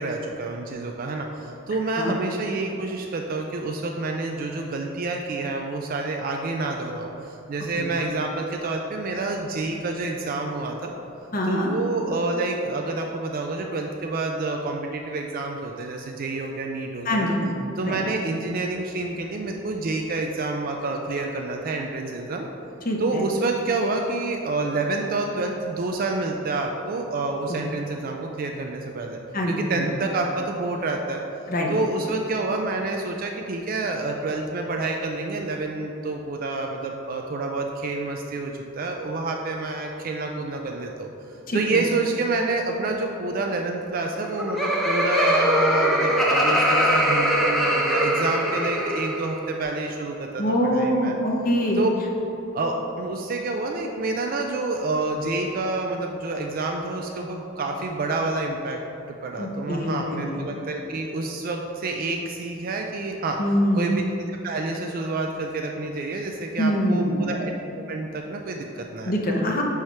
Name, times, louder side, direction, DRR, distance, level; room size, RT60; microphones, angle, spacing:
voice 1, 0.0-10.9 11.5-17.3 17.8-22.5 23.0-29.2 29.5-31.2 31.7-41.1 41.5-51.1 51.8-51.9 52.5-58.8 59.1-63.4 63.7-64.0 64.4-67.5 67.9-69.1, right 3 dB, 45° right, 2 dB, 0.4 m, -28 dB
voice 2, 11.3-11.7 17.0-17.5 17.8-18.0 22.8-23.2 27.5-27.6 29.3-29.8 31.5-31.7 41.5-41.8 50.4-51.8 59.4-60.4 63.4-63.9 66.6-67.2 69.0-69.6, equal, 45° left, 0 dB, 0.8 m, -24 dB
Laughter, 44.1-49.3, equal, ahead, 0.7 m, -22 dB
4.8 x 4.5 x 5.5 m, 2.8 s
head